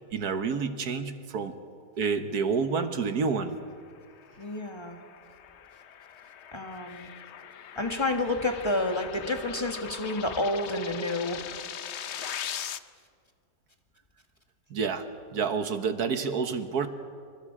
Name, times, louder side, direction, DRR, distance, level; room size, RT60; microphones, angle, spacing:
voice 1, 0.1-1.5 2.0-3.6 14.7-16.9, right 5 dB, 65° right, 8 dB, 1.7 m, -29 dB
sound 1, 3.9-12.8, left 9 dB, 60° left, 0.7 m, -41 dB
voice 2, 4.4-5.0 6.5-7.1 7.7-11.4, left 2 dB, 15° left, 3 dB, 1.6 m, -29 dB
27.5 x 25.5 x 4.9 m, 2.2 s
omnidirectional pair, 1.8 m